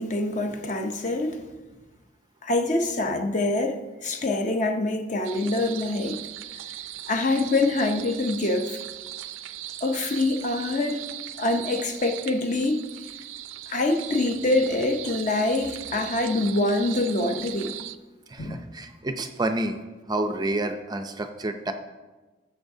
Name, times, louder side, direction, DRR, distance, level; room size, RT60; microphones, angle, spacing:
voice 1, 0.0-1.5 2.4-6.3 7.1-8.8 9.8-11.1 11.4-12.9 13.7-17.7 18.4-18.6, left 2 dB, 40° left, 0.7 m, -25 dB
sound 1, 5.2-18.0, right 12 dB, 85° right, 0.4 m, -39 dB
voice 2, 18.3-19.8 20.1-21.7, right 2 dB, 20° right, 0.4 m, -29 dB
15.0 x 6.8 x 2.7 m
head